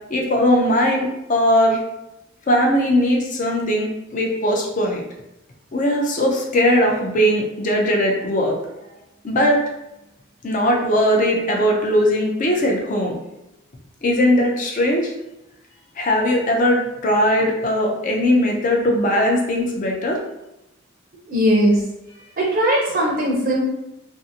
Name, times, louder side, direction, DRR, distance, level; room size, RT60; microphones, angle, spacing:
voice 1, 0.1-1.8 2.5-5.0 5.7-8.6 9.2-9.6 10.4-13.2 14.0-15.1 16.0-20.2, equal, 40° left, 0 dB, 0.4 m, -19 dB
voice 2, 21.3-21.8 22.4-23.6, equal, 45° right, -3 dB, 0.5 m, -18 dB
2.6 x 2.4 x 2.7 m, 0.89 s
head